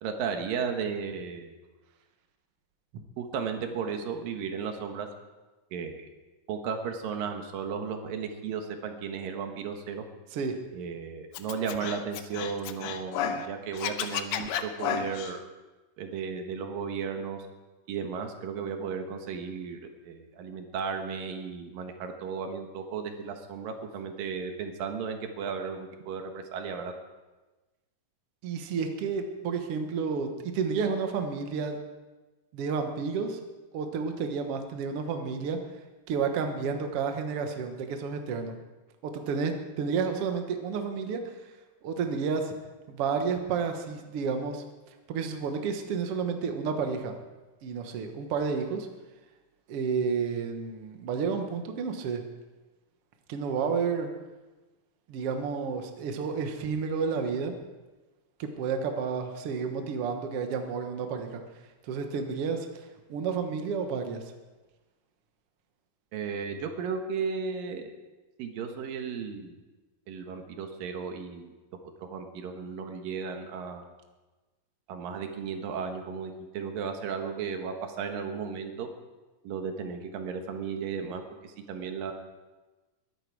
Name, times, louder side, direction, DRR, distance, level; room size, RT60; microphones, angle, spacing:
voice 1, 0.0-1.5 3.2-5.1 5.7-6.1 6.5-10.0 10.7-15.5 16.0-17.4 17.9-26.9 66.1-67.9 68.4-69.6 70.1-71.5 72.0-73.9 74.9-78.9 79.4-82.1, right 6 dB, 85° right, 5 dB, 3.1 m, -35 dB
voice 2, 10.3-10.6 28.4-31.8 32.5-33.4 33.7-35.6 36.1-38.5 39.0-41.4 41.8-42.5 42.9-44.6 45.1-47.1 47.6-48.9 49.7-52.2 53.3-54.1 55.1-57.5 58.4-61.4 61.9-62.7 63.1-64.2, right 5 dB, 55° right, 5 dB, 1.9 m, -31 dB
Scratching (performance technique), 11.3-13.5 13.7-15.3, left 8 dB, 85° left, 2.5 m, -32 dB
21.5 x 11.5 x 4.8 m, 1.2 s
omnidirectional pair, 3.9 m